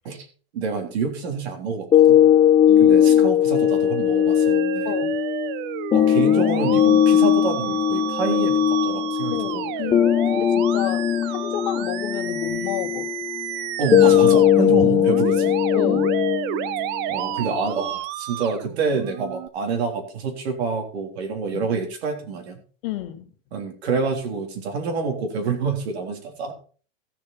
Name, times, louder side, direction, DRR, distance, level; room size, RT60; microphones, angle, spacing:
voice 1, 0.5-2.2 2.8-4.9 5.9-8.6 8.8-9.9 13.8-15.5 17.1-22.6 23.5-26.5, right 5 dB, 80° right, 3.5 m, -27 dB
sound 1, 1.9-17.9, left 10 dB, 15° left, 0.5 m, -19 dB
voice 2, 2.7-3.3 4.8-5.2 9.3-13.1 15.7-16.2 21.5-21.7 22.8-23.2, left 13 dB, 55° left, 1.4 m, -31 dB
Musical instrument, 3.5-19.5, right 13 dB, 35° right, 0.6 m, -31 dB
15.0 x 6.9 x 4.3 m
supercardioid pair, 150°, 31 cm